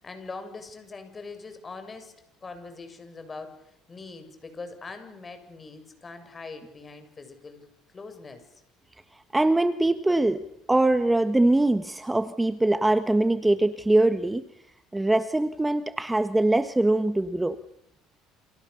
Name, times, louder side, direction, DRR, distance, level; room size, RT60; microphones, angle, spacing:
voice 1, 0.0-2.1 2.4-7.7 7.9-8.5, left 3 dB, 25° left, 8 dB, 7.3 m, -42 dB
voice 2, 9.3-10.4 10.7-14.4 14.9-17.6, right 2 dB, 10° right, 11 dB, 1.3 m, -22 dB
29.5 x 27.5 x 7.0 m, 0.77 s
supercardioid pair, 95°, 0 cm